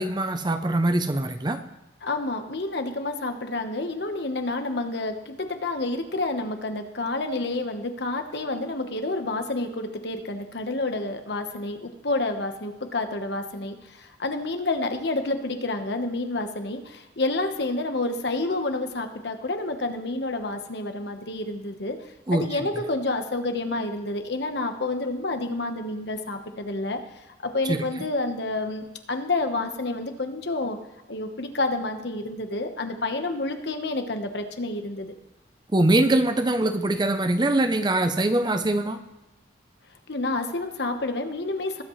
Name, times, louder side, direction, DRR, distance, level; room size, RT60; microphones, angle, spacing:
voice 1, 0.0-1.6 22.3-22.7 27.7-27.8 35.7-39.0, right 1 dB, 25° right, 9 dB, 0.6 m, -23 dB
voice 2, 2.0-22.0 22.3-27.0 27.4-30.8 31.1-35.1 40.1-41.8, left 2 dB, 65° left, 6 dB, 1.2 m, -29 dB
20.0 x 8.3 x 3.2 m, 1.0 s
head